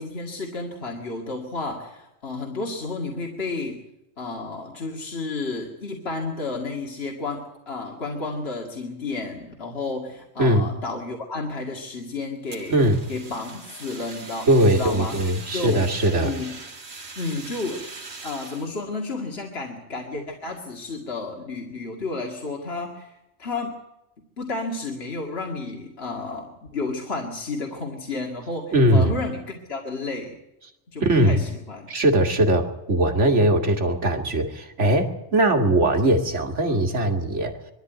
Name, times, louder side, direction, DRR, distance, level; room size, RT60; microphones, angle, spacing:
voice 1, 0.0-3.8 4.2-12.8 13.1-15.2 15.5-15.8 16.2-16.6 17.2-17.9 18.2-23.1 23.4-23.8 24.4-30.4 30.9-31.9, left 3 dB, 60° left, 0 dB, 2.5 m, -31 dB
Fire, 12.5-18.7, right 3 dB, 65° right, 2.1 m, -41 dB
voice 2, 12.7-13.0 14.5-16.3 28.7-29.2 31.0-31.4 31.9-37.6, right 1 dB, 85° right, 5 dB, 2.5 m, -20 dB
22.5 x 13.0 x 9.3 m, 0.92 s
omnidirectional pair, 1.2 m